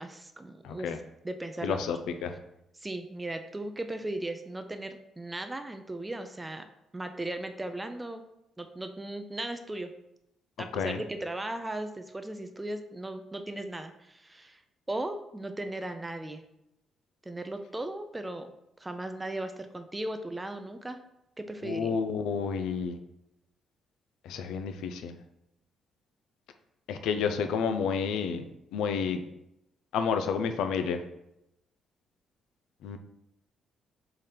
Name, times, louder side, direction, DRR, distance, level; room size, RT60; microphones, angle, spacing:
voice 1, 0.0-1.9 2.8-6.7 6.9-8.2 8.6-9.9 10.6-14.6 14.9-16.4 17.3-18.5 18.8-21.0 21.4-22.0, right 1 dB, 15° right, 7 dB, 0.4 m, -37 dB
voice 2, 0.6-1.0 1.6-2.0 2.2-2.3 10.7-11.0 21.6-23.0 24.3-25.1 26.9-28.4 28.7-29.2 29.9-31.0 32.8-33.0, left 6 dB, 85° left, 7 dB, 0.4 m, -30 dB
3.7 x 3.3 x 4.3 m, 0.84 s
cardioid pair, 90°, 0 cm